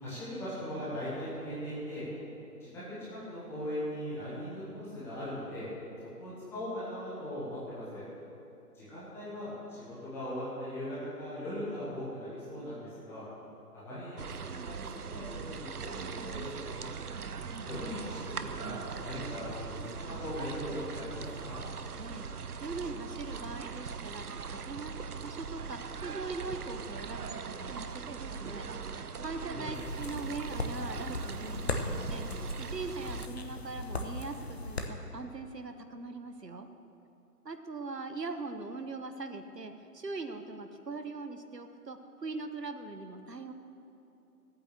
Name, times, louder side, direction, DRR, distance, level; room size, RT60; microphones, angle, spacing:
voice 1, 0.0-2.0 2.6-5.6 6.2-8.0 8.7-13.2 13.7-16.9 17.6-19.8 20.1-21.6 29.5-29.8, equal, 5° left, -11 dB, 1.7 m, -39 dB
sound 1, 14.2-33.3, right 5 dB, 70° right, 0.8 m, -40 dB
voice 2, 22.6-24.9 25.2-28.7 29.2-36.7 37.4-43.5, right 3 dB, 90° right, 7 dB, 1.2 m, -41 dB
sound 2, 29.7-34.9, left 2 dB, 40° left, 1.0 m, -38 dB
14.0 x 8.8 x 6.7 m, 2.9 s
figure-of-eight pair, 150°, 47 cm